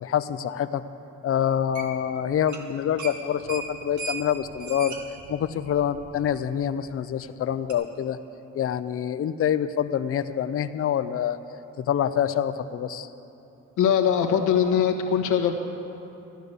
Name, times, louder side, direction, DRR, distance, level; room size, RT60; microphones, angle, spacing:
voice 1, 0.0-0.8 1.2-4.9 5.3-8.2 8.5-11.4 11.8-13.1, left 9 dB, 50° left, 12 dB, 0.6 m, -26 dB
sound 1, 1.7-2.1 2.4-2.7 3.0-6.4 6.7-6.8 7.7-7.8, right 4 dB, 75° right, 1.8 m, -37 dB
voice 2, 13.8-15.6, left 8 dB, 90° left, 2 dB, 1.3 m, -21 dB
14.0 x 10.5 x 6.8 m, 2.9 s
cardioid pair, 90°, 30 cm